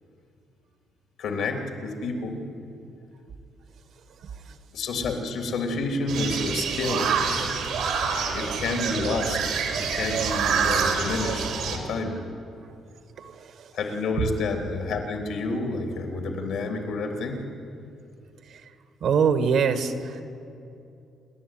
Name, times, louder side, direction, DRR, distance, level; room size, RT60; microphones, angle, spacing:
voice 1, 1.2-2.4 4.7-7.6 8.3-9.4 9.7-12.2 13.7-17.4, left 3 dB, 80° left, 4 dB, 3.3 m, -29 dB
voice 2, 4.1-4.6 13.2-13.7 14.2-14.3 18.5-18.7 19.0-20.2, right 6 dB, 70° right, 9 dB, 1.7 m, -25 dB
sound 1, 6.1-11.8, right 6 dB, 90° right, 3.1 m, -26 dB
28.0 x 11.5 x 9.3 m, 2.6 s
cardioid pair, 85°, 0 cm